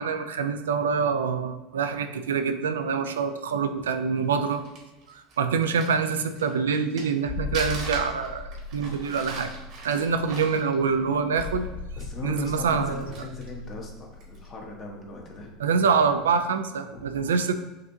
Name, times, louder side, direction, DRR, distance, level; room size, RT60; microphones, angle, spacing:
voice 1, 0.0-4.6 5.1-9.5 9.8-11.7 12.2-13.1 15.6-17.5, right 5 dB, 85° right, 8 dB, 0.3 m, -25 dB
Crumpling crinkling, 4.2-7.2 7.5-11.7 12.0-12.1 12.7-13.6 14.1-14.4, right 3 dB, 55° right, 1.1 m, -41 dB
sound 1, 7.3-15.7 15.9-16.1, left 4 dB, 55° left, 0.5 m, -38 dB
voice 2, 12.0-15.5 16.9-17.0, left 3 dB, 40° left, 0 dB, 1.1 m, -38 dB
6.4 x 2.5 x 2.7 m, 1.1 s
hypercardioid pair, 80°, 0 cm